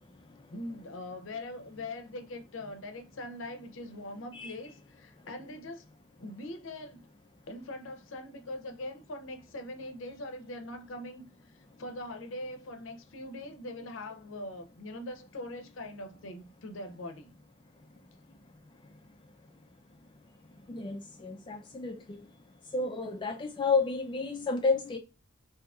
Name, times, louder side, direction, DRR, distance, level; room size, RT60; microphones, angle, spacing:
voice 1, 0.5-5.8 6.2-7.1 7.5-17.3, left 1 dB, 85° left, 0.6 m, -42 dB
voice 2, 20.7-22.2 22.7-25.0, left 4 dB, 25° left, 0.3 m, -31 dB
3.5 x 2.8 x 2.3 m
head